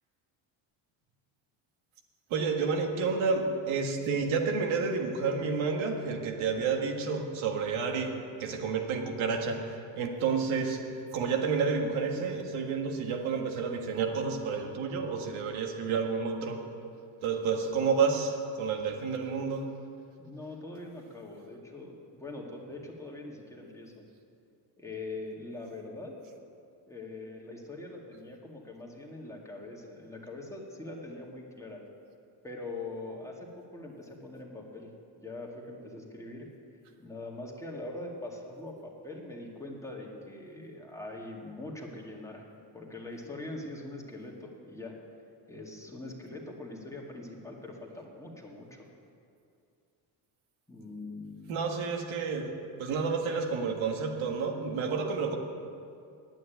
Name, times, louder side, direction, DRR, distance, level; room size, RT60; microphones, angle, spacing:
voice 1, 2.3-8.1 8.4-10.8 11.1-16.6 17.2-19.7 51.5-52.5 52.8-55.4, right 5 dB, 75° right, 2 dB, 1.8 m, -30 dB
voice 2, 20.2-24.1 24.8-26.2 26.9-31.8 32.4-34.9 35.2-36.5 37.0-42.5 42.7-45.0 45.5-48.9 50.7-51.6, left 2 dB, 5° left, -2 dB, 2.0 m, -42 dB
9.4 x 8.9 x 9.1 m, 2.4 s
cardioid pair, 115°, 48 cm